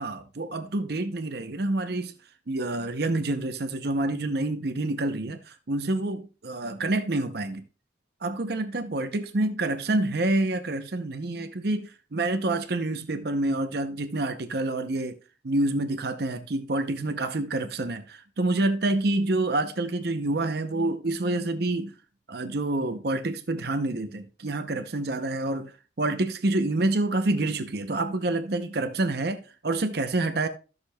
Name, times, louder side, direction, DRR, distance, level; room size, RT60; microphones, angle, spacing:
voice 1, 0.0-2.1 2.5-7.6 8.2-15.2 15.4-22.0 22.3-30.5, right 2 dB, 55° right, 0.7 m, -27 dB
14.5 x 6.6 x 2.3 m
head